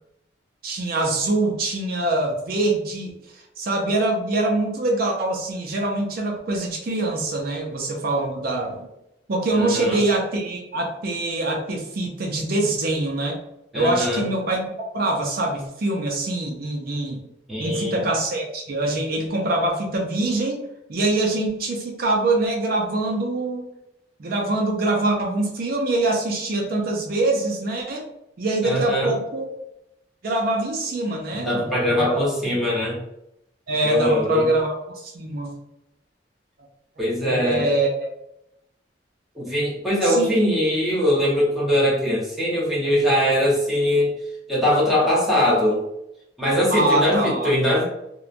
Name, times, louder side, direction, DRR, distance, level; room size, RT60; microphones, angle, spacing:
voice 1, 0.6-8.9 9.3-13.4 13.7-14.6 14.9-17.2 17.6-20.6 20.9-23.7 24.2-28.1 28.4-29.6 30.2-32.6 33.7-35.5 37.2-38.1 40.0-40.5 46.7-47.5, right 2 dB, 55° right, 1 dB, 0.5 m, -24 dB
voice 2, 9.5-10.0 13.7-14.2 17.5-18.0 28.6-29.1 31.3-33.0 33.8-34.5 37.0-37.7 39.3-44.1 44.5-45.8 46.4-47.8, left 1 dB, ahead, -6 dB, 0.8 m, -21 dB
2.8 x 2.1 x 2.4 m, 0.82 s
head